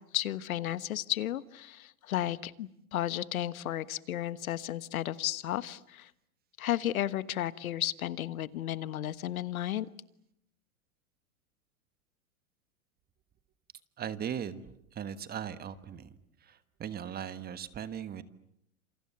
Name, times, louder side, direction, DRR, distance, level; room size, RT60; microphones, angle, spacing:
voice 1, 0.1-6.1 6.6-9.9, left 12 dB, 75° left, 15 dB, 1.4 m, -33 dB
voice 2, 14.0-18.2, right 9 dB, 20° right, 13 dB, 1.4 m, -39 dB
28.0 x 28.0 x 7.1 m, 0.74 s
hypercardioid pair, 125°, 42 cm